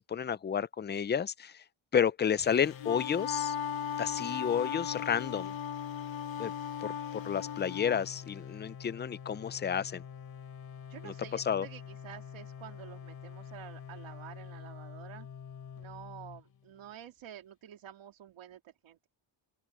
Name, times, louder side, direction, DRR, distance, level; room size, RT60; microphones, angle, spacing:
voice 1, 0.1-1.6 1.9-3.6 4.0-5.5 6.4-6.5 6.8-10.0 11.0-11.7, left 8 dB, 25° left, 0.5 m, -31 dB
sound 1, 2.4-16.9, left 8 dB, 50° left, 3.1 m, -47 dB
Wind instrument woodwind instrument, 2.6-8.1, left 8 dB, 75° left, 1.4 m, -37 dB
voice 2, 10.9-15.3 15.8-19.1, right 10 dB, 85° right, 2.9 m, -49 dB
open air
wide cardioid pair, 165°, 46 cm